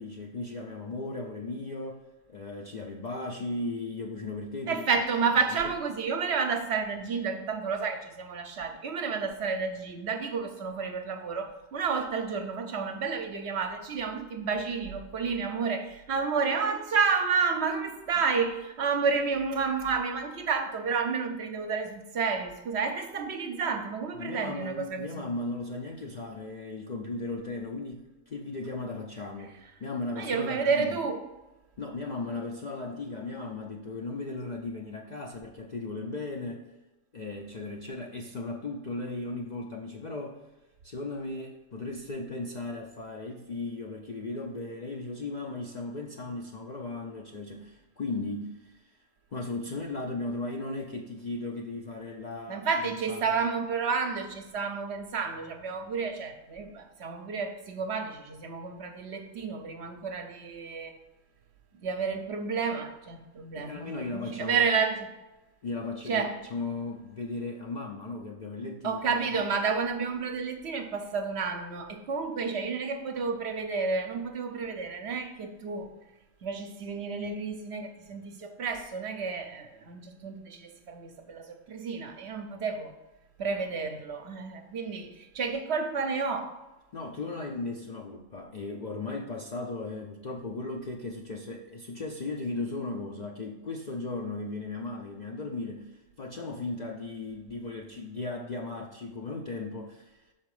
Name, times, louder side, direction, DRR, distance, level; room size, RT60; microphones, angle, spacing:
voice 1, 0.0-2.0 2.3-4.8 5.5-5.7 24.2-31.0 31.8-36.7 37.1-40.4 40.8-49.0 49.3-52.7 53.1-53.4 63.5-64.7 65.6-69.2 86.9-100.2, left 3 dB, 55° left, 0.5 m, -36 dB
voice 2, 4.7-25.3 30.2-31.2 52.5-61.0 61.8-65.1 66.1-66.4 68.8-75.9 76.4-82.9 83.4-86.5, right 5 dB, 60° right, 0.9 m, -30 dB
6.0 x 4.3 x 4.8 m
omnidirectional pair, 1.3 m